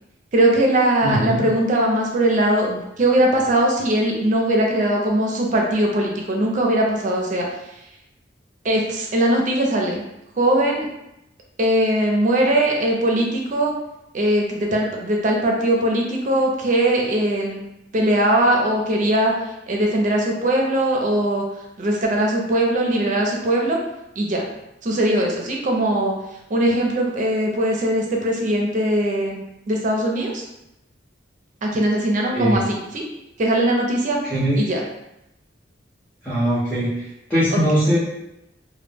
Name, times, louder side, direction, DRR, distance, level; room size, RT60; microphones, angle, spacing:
voice 1, 0.3-7.5 8.6-10.1 10.4-10.9 11.6-13.7 14.1-19.3 19.7-21.4 21.8-23.8 24.2-24.5 24.8-26.1 26.5-30.4 31.6-33.0 33.4-34.2 34.6-34.8 37.5-37.6, right 1 dB, 45° right, 0 dB, 0.4 m, -20 dB
voice 2, 1.0-1.5 32.3-32.6 34.2-34.6 36.2-38.0, equal, 5° left, -12 dB, 0.6 m, -21 dB
2.1 x 2.1 x 3.2 m, 0.87 s
head